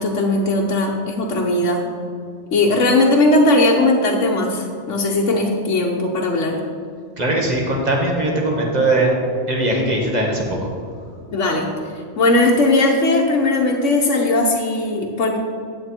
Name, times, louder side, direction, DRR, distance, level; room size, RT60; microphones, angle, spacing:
voice 1, 0.0-1.8 2.5-6.6 11.3-11.7 12.2-15.4, left 2 dB, 85° left, -1 dB, 1.2 m, -18 dB
voice 2, 7.2-9.1 9.5-10.7, right 1 dB, 35° right, -1 dB, 1.7 m, -20 dB
10.0 x 7.7 x 4.4 m, 2.3 s
omnidirectional pair, 1.2 m